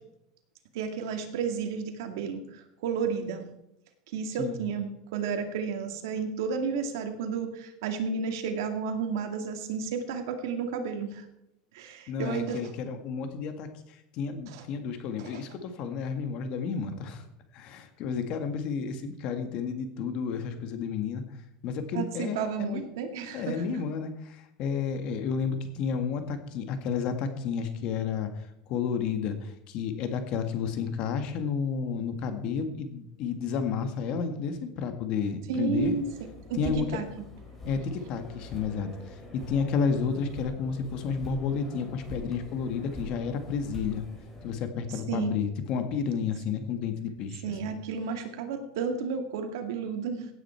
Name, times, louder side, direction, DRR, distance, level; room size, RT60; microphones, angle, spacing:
voice 1, 0.7-3.5 4.1-11.2 11.7-12.6 14.5-14.6 15.2-15.4 21.9-23.8 35.5-36.1 36.5-37.0 44.9-45.4 47.4-50.3, right 6 dB, 80° right, 5 dB, 2.2 m, -32 dB
voice 2, 12.1-13.7 14.1-17.2 17.5-21.2 21.6-22.9 23.3-28.3 28.7-35.9 36.5-36.9 37.6-38.9 39.3-44.1 44.4-47.7, left 6 dB, 45° left, 7 dB, 1.8 m, -31 dB
sound 1, 35.8-44.5, left 1 dB, 15° left, 4.5 m, -44 dB
16.5 x 9.2 x 4.5 m, 0.83 s
supercardioid pair, 150°, 2 cm